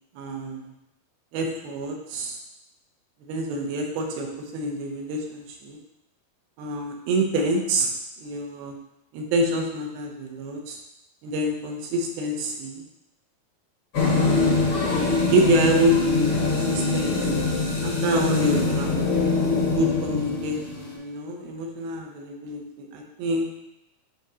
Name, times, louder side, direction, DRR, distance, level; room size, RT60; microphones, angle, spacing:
voice 1, 0.2-0.7 1.3-2.4 3.3-4.3 4.5-5.8 6.6-7.9 8.2-8.7 9.1-10.8 11.2-12.8 14.0-14.6 15.3-17.1 17.8-19.1 19.8-23.6, right 1 dB, 80° right, 2 dB, 2.7 m, -27 dB
sound 1, 13.9-20.9, left 3 dB, 60° left, 1.5 m, -23 dB
10.0 x 3.6 x 2.8 m, 0.88 s
omnidirectional pair, 4.5 m